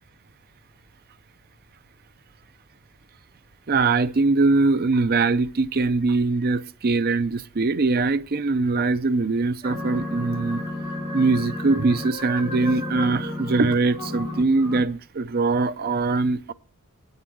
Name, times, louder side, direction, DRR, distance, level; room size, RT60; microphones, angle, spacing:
voice 1, 3.7-10.6 11.1-16.5, right 3 dB, 45° right, 0.5 m, -22 dB
sound 1, 9.6-14.8, left 1 dB, 25° right, 3.4 m, -32 dB
9.6 x 8.1 x 7.6 m
head